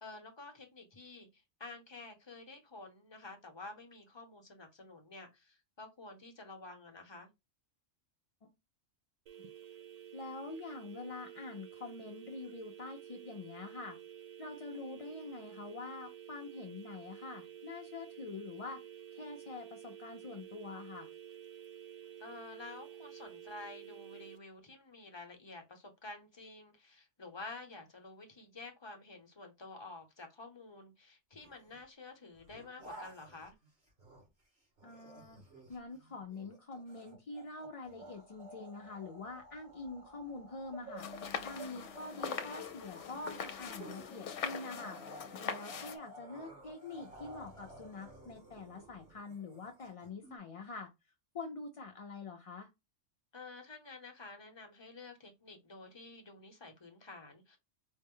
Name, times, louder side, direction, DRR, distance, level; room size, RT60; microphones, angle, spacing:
voice 1, 0.0-7.3 22.2-33.6 53.3-57.6, left 3 dB, 25° left, 0.8 m, -50 dB
sound 1, 9.3-24.4, right 10 dB, 80° right, 0.3 m, -51 dB
voice 2, 10.1-14.0 14.4-18.8 19.1-21.1 34.8-35.4 35.7-41.1 41.4-45.0 45.4-50.9 51.3-52.7, left 3 dB, 45° left, 0.4 m, -45 dB
sound 2, 31.4-31.8 32.3-34.4 34.8-50.4, right 1 dB, 55° right, 2.4 m, -54 dB
sound 3, 41.0-46.0, left 7 dB, 75° left, 0.9 m, -42 dB
4.5 x 2.1 x 3.7 m
omnidirectional pair, 1.2 m